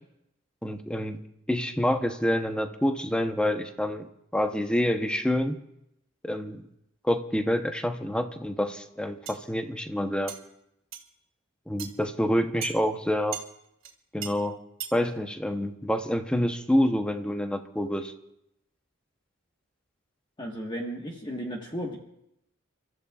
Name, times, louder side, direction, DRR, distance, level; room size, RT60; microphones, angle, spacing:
voice 1, 0.6-1.2 1.5-4.1 4.3-5.6 6.2-6.6 7.0-10.3 11.7-13.4 14.1-14.6 14.9-18.1, equal, 5° left, 6 dB, 0.8 m, -27 dB
sound 1, 9.3-9.4 10.3-10.4 10.9-11.1 11.8-11.9 12.6-12.8 13.3-13.5 13.8-13.9 14.2-14.3 14.8-15.0, right 8 dB, 75° right, 2.0 m, -36 dB
voice 2, 20.4-22.0, equal, 20° left, -1 dB, 1.4 m, -34 dB
30.0 x 14.0 x 2.4 m, 0.81 s
head